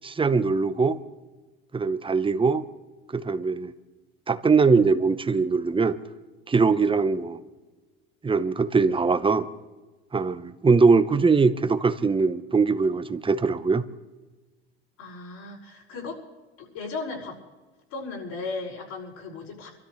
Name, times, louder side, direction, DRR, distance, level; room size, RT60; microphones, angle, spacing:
voice 1, 0.0-1.0 1.7-2.6 3.1-3.7 4.3-6.0 6.5-7.4 8.2-9.5 10.1-13.8, right 4 dB, 15° right, 11 dB, 1.0 m, -21 dB
voice 2, 15.0-16.2 16.6-17.4 17.9-19.7, left 3 dB, 60° left, -3 dB, 5.9 m, -36 dB
27.0 x 13.5 x 3.3 m, 1.2 s
hypercardioid pair, 75°, 31 cm